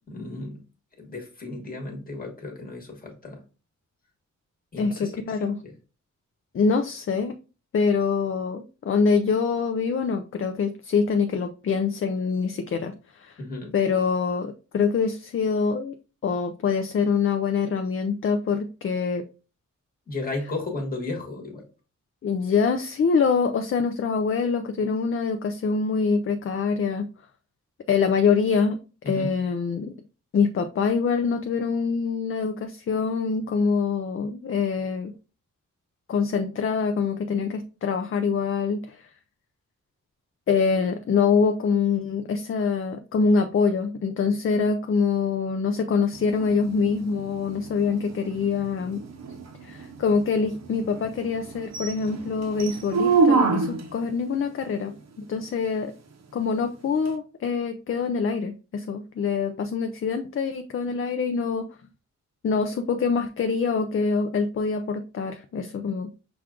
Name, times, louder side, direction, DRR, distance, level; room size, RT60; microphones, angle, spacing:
voice 1, 0.1-0.6 1.0-3.4 4.7-5.7 13.4-13.7 20.1-21.6 29.0-29.3, left 2 dB, 30° left, 0 dB, 1.3 m, -34 dB
voice 2, 4.8-5.6 6.5-7.4 7.7-13.4 13.7-15.9 16.2-19.2 22.2-27.1 27.9-28.8 29.1-29.9 30.3-35.1 36.1-39.1 40.5-49.0 49.6-55.9 56.3-61.7 62.4-66.1, left 5 dB, 45° left, 7 dB, 0.4 m, -25 dB
sound 1, 46.1-54.0 57.1-57.2, right 4 dB, 60° right, 0.7 m, -28 dB
6.0 x 2.4 x 3.6 m, 0.33 s
wide cardioid pair, 165°, 31 cm